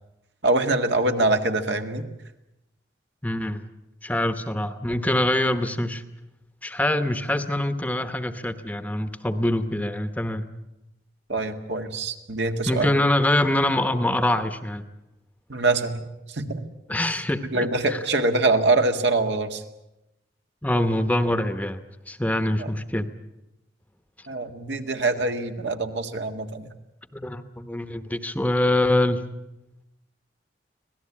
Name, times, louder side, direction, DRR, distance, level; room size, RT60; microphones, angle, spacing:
voice 1, 0.4-2.0 11.3-12.9 15.5-16.6 17.0-17.1 17.5-19.6 22.6-22.7 24.3-26.7, right 2 dB, 75° right, 5 dB, 1.9 m, -24 dB
voice 2, 3.2-3.7 4.0-6.0 6.6-10.5 12.7-14.8 16.9-18.0 20.6-23.1 27.1-29.3, left 1 dB, 10° left, 10 dB, 0.9 m, -24 dB
25.5 x 17.5 x 8.6 m, 0.92 s
head